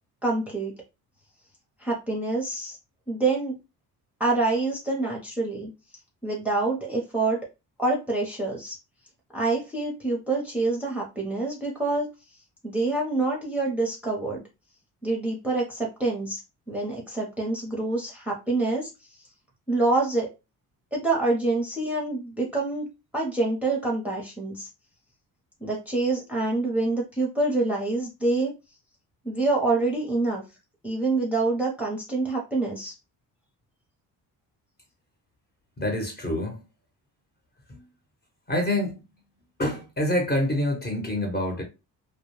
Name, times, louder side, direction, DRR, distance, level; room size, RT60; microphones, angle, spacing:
voice 1, 0.2-0.7 1.8-2.8 3.1-3.6 4.2-5.7 6.2-7.4 7.8-8.8 9.3-12.1 12.6-14.4 15.0-16.4 16.7-18.9 19.7-20.3 20.9-22.9 23.1-24.7 25.6-28.5 29.2-30.4 30.8-32.9, right 2 dB, 5° right, 0.8 m, -26 dB
voice 2, 35.8-36.6 37.7-37.8 38.5-39.0 39.6-41.6, left 1 dB, 25° left, 1.0 m, -26 dB
2.2 x 2.2 x 3.1 m
cardioid pair, 90°, 37 cm